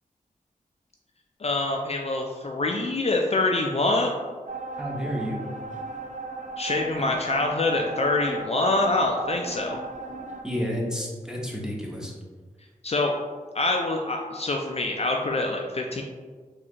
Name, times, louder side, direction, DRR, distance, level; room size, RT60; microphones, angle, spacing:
voice 1, 1.4-4.1 6.6-9.8 12.8-13.1 13.5-16.0, left 2 dB, 45° left, 1 dB, 0.4 m, -25 dB
sound 1, 4.5-10.4, right 3 dB, 55° right, 0.5 m, -36 dB
voice 2, 4.8-5.4 10.4-12.1, equal, 5° right, -3 dB, 0.8 m, -30 dB
4.1 x 2.4 x 2.8 m, 1.5 s
cardioid pair, 55°, 15 cm